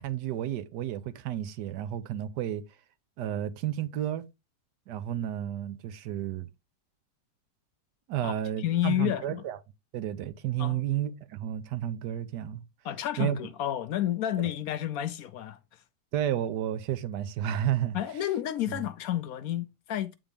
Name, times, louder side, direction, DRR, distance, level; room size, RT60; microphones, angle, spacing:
voice 1, 0.0-2.6 3.2-4.2 4.9-6.5 8.1-9.6 9.9-12.6 13.2-13.4 16.1-18.0 18.7-18.8, right 11 dB, 85° right, 1.3 m, -31 dB
voice 2, 8.2-9.4 10.6-10.8 12.8-15.6 17.9-20.2, left 12 dB, 70° left, 0.9 m, -30 dB
9.0 x 3.7 x 3.4 m
omnidirectional pair, 1.8 m